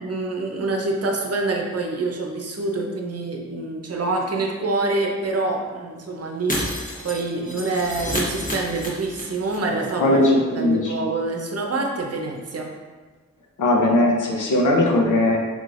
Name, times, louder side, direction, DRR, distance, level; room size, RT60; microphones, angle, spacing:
voice 1, 0.0-10.2 10.6-12.7, right 3 dB, 50° right, 1 dB, 0.7 m, -26 dB
Shatter, 6.5-9.6 9.8-9.9 10.2-10.3, left 1 dB, 25° left, 1.0 m, -29 dB
voice 2, 10.0-10.9 13.6-15.4, left 1 dB, 75° left, -1 dB, 0.8 m, -19 dB
5.1 x 3.1 x 2.6 m, 1.4 s
cardioid pair, 55°, 31 cm